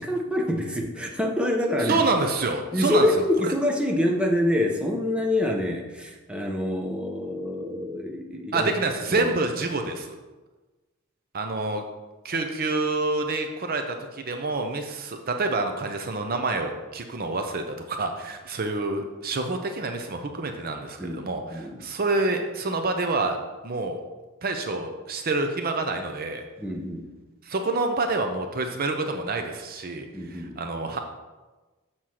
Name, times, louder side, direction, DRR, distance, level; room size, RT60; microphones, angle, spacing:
voice 1, 0.0-2.0 2.7-8.7 9.1-9.3 21.0-21.8 26.6-27.1 30.1-30.6, left 1 dB, 5° right, 1 dB, 0.8 m, -26 dB
voice 2, 1.8-3.5 8.5-10.2 11.3-11.8 12.2-23.4 23.6-24.0 24.4-26.4 27.4-31.0, right 3 dB, 45° right, 5 dB, 0.6 m, -27 dB
7.6 x 4.3 x 6.3 m, 1.2 s
head